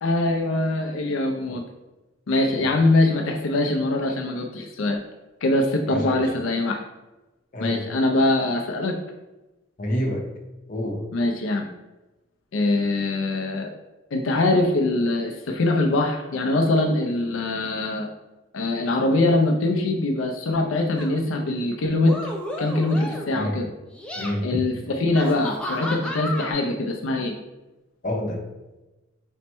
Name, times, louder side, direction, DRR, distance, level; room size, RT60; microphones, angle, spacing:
voice 1, 0.0-1.6 2.3-5.0 5.4-6.8 7.6-8.9 11.1-11.7 12.5-13.7 14.1-18.1 18.5-22.2 22.6-23.7 24.4-27.3, left 2 dB, 80° left, 3 dB, 0.4 m, -23 dB
voice 2, 2.5-2.8 5.9-6.2 7.5-7.8 9.8-10.2 10.7-11.0 23.3-23.5 24.1-24.6 28.0-28.4, equal, 40° left, 1 dB, 0.7 m, -28 dB
sound 1, 21.0-21.2 22.0-23.4 23.9-24.3 25.2-26.5, left 1 dB, 5° left, 0.4 m, -32 dB
4.2 x 2.1 x 4.3 m, 1.1 s
head